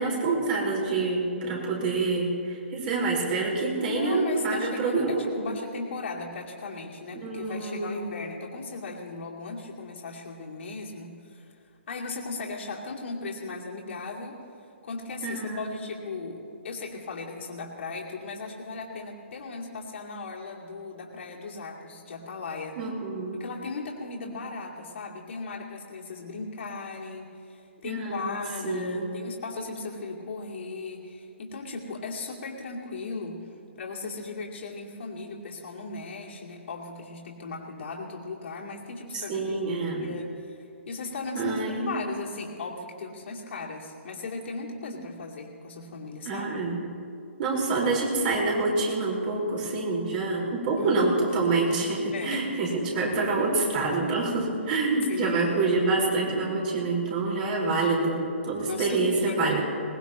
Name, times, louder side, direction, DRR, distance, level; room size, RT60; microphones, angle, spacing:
voice 1, 0.0-5.3 7.1-8.1 15.2-15.7 22.8-23.4 27.8-28.4 28.6-29.1 39.1-40.1 41.3-42.0 46.2-46.8 47.4-59.6, right 3 dB, 45° right, -3 dB, 4.8 m, -27 dB
voice 2, 3.9-11.5 11.9-14.4 14.8-22.8 23.3-33.4 33.8-41.6 41.9-46.4 50.8-51.4 52.1-52.5 52.9-53.0 55.1-55.8 56.1-56.6 58.7-59.6, left 3 dB, 65° left, -2 dB, 2.6 m, -37 dB
21.0 x 19.0 x 3.1 m, 2.5 s
hypercardioid pair, 135°, 7 cm